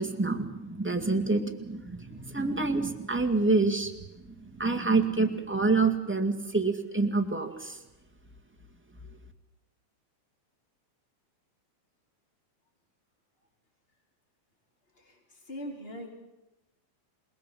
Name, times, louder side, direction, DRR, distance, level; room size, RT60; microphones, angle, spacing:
voice 1, 0.0-3.9 4.4-7.8, right 3 dB, 5° right, 3 dB, 1.2 m, -27 dB
voice 2, 15.0-16.1, equal, 20° left, 2 dB, 4.4 m, -41 dB
27.5 x 20.0 x 7.7 m, 0.97 s
omnidirectional pair, 3.5 m